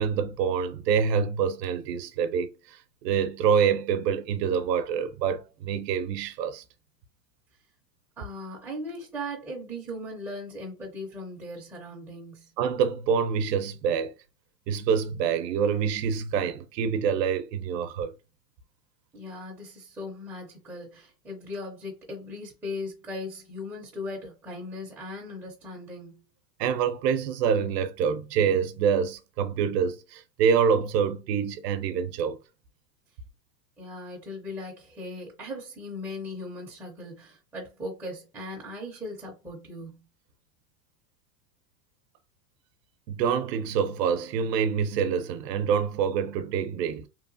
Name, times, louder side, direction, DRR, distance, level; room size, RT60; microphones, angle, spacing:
voice 1, 0.0-6.6 12.6-14.1 14.7-18.1 26.6-32.4 43.1-47.1, right 7 dB, 85° right, 0.6 m, -26 dB
voice 2, 8.2-12.5 19.1-26.2 33.8-40.1, left 1 dB, 5° right, 0.5 m, -38 dB
2.9 x 2.1 x 2.5 m
supercardioid pair, 135°, 48 cm